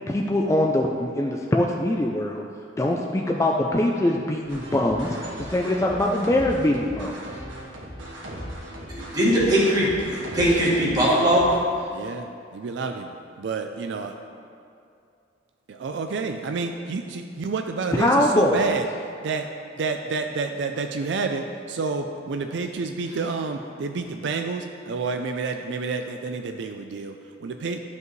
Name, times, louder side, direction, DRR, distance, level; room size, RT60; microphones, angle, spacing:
voice 1, 0.1-2.4 2.8-7.2 18.0-18.6, left 1 dB, 15° left, 0 dB, 0.3 m, -23 dB
sound 1, 4.4-11.6, equal, 85° right, 1.6 m, -38 dB
voice 2, 9.1-11.5, equal, 20° right, -7 dB, 1.8 m, -20 dB
voice 3, 11.9-12.3 12.5-14.2 15.7-18.9 19.2-19.5 19.8-27.2 27.4-27.8, right 4 dB, 65° right, 5 dB, 0.4 m, -29 dB
11.5 x 5.3 x 3.1 m, 2.5 s
head